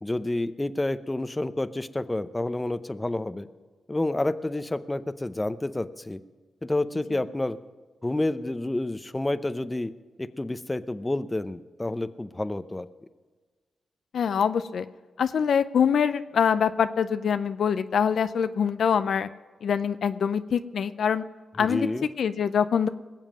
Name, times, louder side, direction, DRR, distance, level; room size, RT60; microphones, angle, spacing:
voice 1, 0.0-3.5 3.9-6.2 6.6-7.6 8.0-9.9 10.2-12.9 21.6-22.1, left 2 dB, 20° left, 13 dB, 0.7 m, -29 dB
voice 2, 14.1-14.9 15.2-19.3 19.6-21.2 21.6-21.9 22.2-22.9, left 7 dB, 70° left, 12 dB, 0.5 m, -24 dB
20.5 x 7.4 x 7.4 m, 1.4 s
cardioid pair, 60°, 0 cm